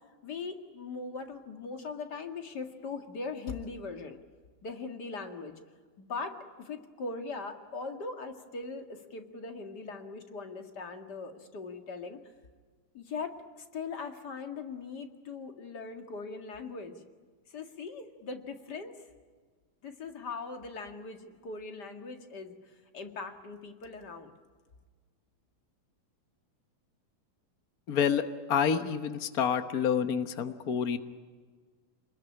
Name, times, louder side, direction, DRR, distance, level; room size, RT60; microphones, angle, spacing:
voice 1, 0.2-4.2 4.6-5.5 6.0-12.2 12.9-17.0 17.5-19.0 19.8-22.6 22.9-24.3, left 4 dB, 35° left, 6 dB, 2.3 m, -40 dB
voice 2, 27.9-31.0, left 7 dB, 85° left, 9 dB, 0.8 m, -28 dB
28.0 x 21.0 x 9.9 m, 1.5 s
omnidirectional pair, 3.5 m